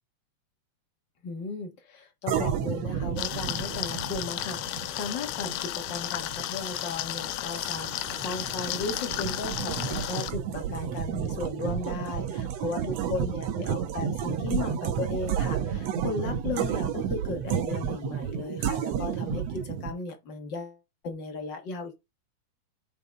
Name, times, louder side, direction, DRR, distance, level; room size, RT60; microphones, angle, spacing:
voice 1, 1.2-22.0, left 3 dB, 45° left, 1.7 m, -36 dB
sound 1, 2.3-19.9, right 8 dB, 65° right, 1.9 m, -31 dB
sound 2, 3.2-10.3, left 13 dB, 80° left, 2.2 m, -33 dB
5.5 x 5.4 x 4.6 m
omnidirectional pair, 3.6 m